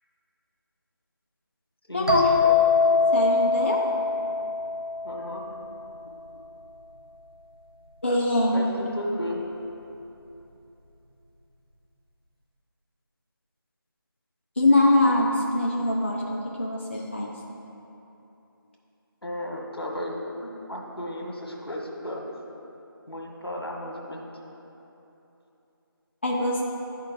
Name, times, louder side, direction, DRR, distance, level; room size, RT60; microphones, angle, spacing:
voice 1, 1.9-2.6 3.1-3.8 8.0-8.7 14.6-17.4 26.2-26.6, left 1 dB, 30° left, -3 dB, 0.5 m, -23 dB
sound 1, 2.1-5.7, left 4 dB, 75° right, 1.2 m, -23 dB
voice 2, 5.0-5.5 8.5-9.4 19.2-22.2 23.1-24.2, left 1 dB, 80° left, 0 dB, 1.3 m, -34 dB
10.5 x 4.4 x 3.7 m, 3.0 s
figure-of-eight pair, 165°, 13 cm